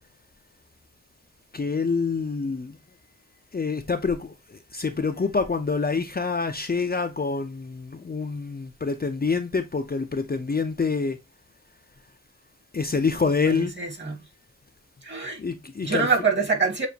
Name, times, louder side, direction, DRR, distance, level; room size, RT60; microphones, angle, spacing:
voice 1, 1.5-2.8 3.5-11.2 12.7-13.7 15.4-16.1, left 4 dB, 30° left, 0.5 m, -26 dB
voice 2, 13.5-14.2 15.0-15.4 15.8-16.9, right 4 dB, 35° right, 1.7 m, -25 dB
6.9 x 2.5 x 2.8 m
wide cardioid pair, 85°, 31 cm